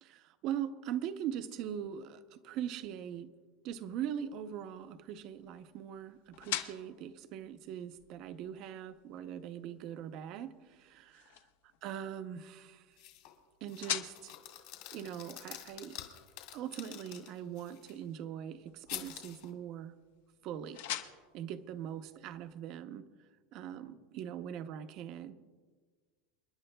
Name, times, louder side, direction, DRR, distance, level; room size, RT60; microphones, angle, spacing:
voice 1, 0.0-3.3 3.6-11.3 11.8-13.0 13.6-14.3 14.9-16.0 16.5-19.9 20.4-20.9 21.3-23.1 23.5-25.4, right 9 dB, 35° right, 11 dB, 0.6 m, -41 dB
sound 1, 3.8-22.6, left 11 dB, 85° left, 1.0 m, -47 dB
sound 2, 13.0-13.3 13.7-17.9 18.9-19.5, left 13 dB, 55° left, 2.1 m, -47 dB
29.5 x 11.0 x 2.2 m, 1.5 s
supercardioid pair, 180°, 0 cm